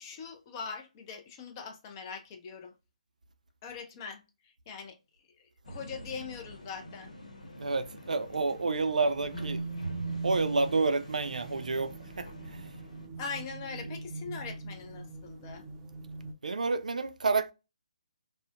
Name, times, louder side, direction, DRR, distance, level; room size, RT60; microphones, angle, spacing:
voice 1, 0.0-2.7 3.6-5.0 5.4-7.1 13.2-15.7, left 5 dB, 30° left, 0.5 m, -42 dB
sound 1, 5.6-13.1, equal, 75° left, 1.0 m, -46 dB
voice 2, 7.6-9.6 10.2-12.6 13.8-13.9 16.4-17.5, right 3 dB, 75° right, 0.4 m, -29 dB
sound 2, 9.3-16.3, right 3 dB, 20° right, 0.5 m, -40 dB
2.5 x 2.1 x 2.4 m
figure-of-eight pair, 140°, 4 cm